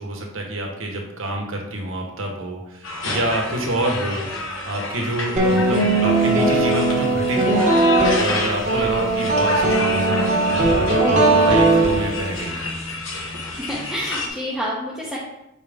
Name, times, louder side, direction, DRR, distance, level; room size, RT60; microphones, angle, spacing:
voice 1, 0.0-4.3 4.7-7.7 8.1-12.5, right 1 dB, 70° right, 1 dB, 1.3 m, -27 dB
sound 1, 2.8-14.3, left 2 dB, 70° left, 1.2 m, -30 dB
sound 2, 5.4-12.5, right 2 dB, 35° right, 1.3 m, -19 dB
voice 2, 13.6-15.2, equal, ahead, -6 dB, 0.8 m, -28 dB
6.4 x 4.7 x 3.6 m, 0.89 s
head